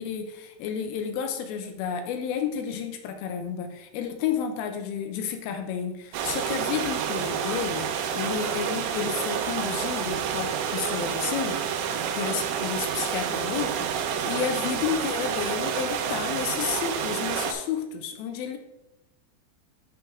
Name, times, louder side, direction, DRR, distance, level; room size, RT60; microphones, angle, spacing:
voice 1, 0.0-7.9 8.2-11.6 12.1-18.6, left 8 dB, 80° left, 5 dB, 2.2 m, -31 dB
sound 1, 6.1-17.5, right 8 dB, 80° right, 2.3 m, -29 dB
10.5 x 4.5 x 3.6 m, 0.90 s
omnidirectional pair, 5.2 m